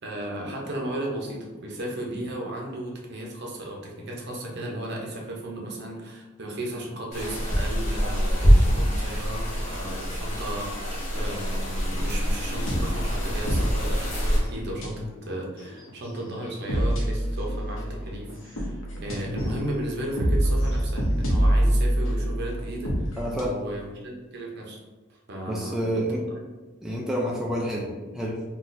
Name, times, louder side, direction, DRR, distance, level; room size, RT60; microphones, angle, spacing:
voice 1, 0.0-23.2 23.4-24.8 25.1-25.8, right 1 dB, 55° right, -1 dB, 0.7 m, -35 dB
sound 1, 7.1-14.4, equal, 35° left, 0.8 m, -25 dB
sound 2, 12.7-23.4, equal, 80° left, 0.7 m, -26 dB
voice 2, 23.2-23.6 25.5-26.2 26.8-28.4, equal, 5° right, -3 dB, 0.3 m, -29 dB
3.9 x 2.3 x 2.5 m, 1.2 s
head